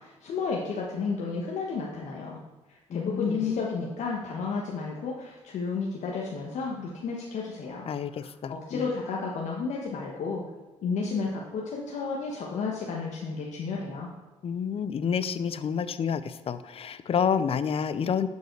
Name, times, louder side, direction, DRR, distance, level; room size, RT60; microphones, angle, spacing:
voice 1, 0.0-2.4 2.7-10.4 10.8-14.1, left 4 dB, 80° left, -3 dB, 1.4 m, -32 dB
voice 2, 2.9-3.9 7.9-8.8 14.4-18.3, left 7 dB, 55° left, 13 dB, 0.6 m, -29 dB
11.5 x 5.4 x 4.6 m, 1.1 s
cardioid pair, 90°, 12 cm